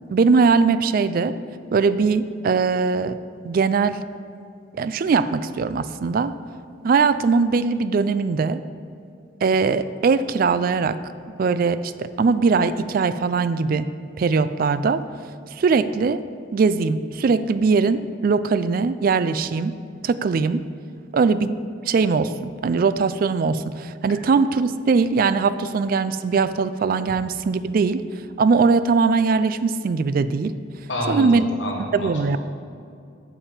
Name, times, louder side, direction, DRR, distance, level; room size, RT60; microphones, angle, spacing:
voice 1, 0.1-1.3 1.7-3.2 3.4-4.0 4.7-6.3 6.8-8.6 9.4-11.0 11.4-13.9 14.2-15.0 15.5-16.2 16.5-19.7 20.0-20.6 21.1-28.0 28.4-30.5 31.1-31.5 31.9-32.4, right 4 dB, 50° right, 13 dB, 0.3 m, -20 dB
voice 2, 30.9-32.1, left 1 dB, 70° left, -2 dB, 1.1 m, -28 dB
7.3 x 7.2 x 5.1 m, 2.5 s
head